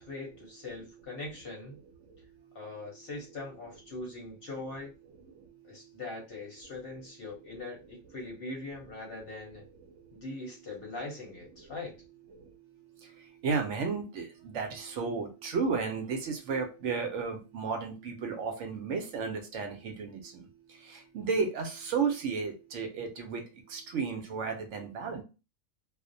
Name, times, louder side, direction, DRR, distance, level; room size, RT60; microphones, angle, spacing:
voice 1, 0.0-1.8 2.5-4.9 5.6-9.6 10.1-11.9, left 2 dB, 50° left, -1 dB, 0.8 m, -41 dB
voice 2, 2.0-2.6 4.0-4.1 5.3-5.9 9.9-10.2 11.6-11.7 12.3-25.2, right 5 dB, 70° right, 4 dB, 0.8 m, -34 dB
2.4 x 2.0 x 2.5 m, 0.30 s
omnidirectional pair, 1.4 m